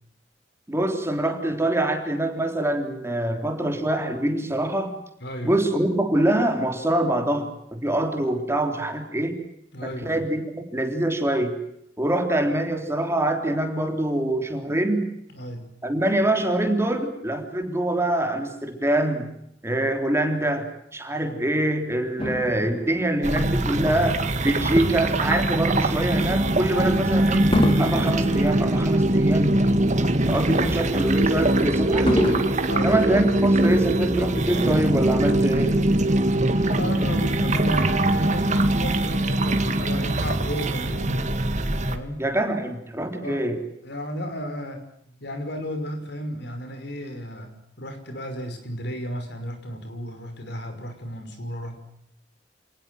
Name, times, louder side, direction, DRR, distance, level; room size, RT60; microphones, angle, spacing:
voice 1, 0.7-4.9 5.4-9.4 9.8-11.5 12.0-15.1 15.8-19.3 19.6-27.5 27.7-29.6 30.3-32.4 32.8-35.7 42.2-43.6, right 1 dB, 15° right, 5 dB, 3.5 m, -24 dB
voice 2, 5.2-5.5 9.7-10.3 15.3-15.7 21.2-21.4 32.7-33.0 36.4-41.3 41.9-42.2 43.2-43.4 43.8-44.8 45.1-51.7, equal, 65° left, 7 dB, 5.7 m, -34 dB
Fireworks, 22.2-24.8 25.4-25.6 27.5-30.0 30.4-30.5 32.1-33.9 34.7-34.8, equal, 30° left, 2.6 m, -29 dB
sound 1, 23.2-42.0, right 1 dB, 40° right, 2.1 m, -22 dB
28.5 x 19.0 x 7.8 m, 0.76 s
head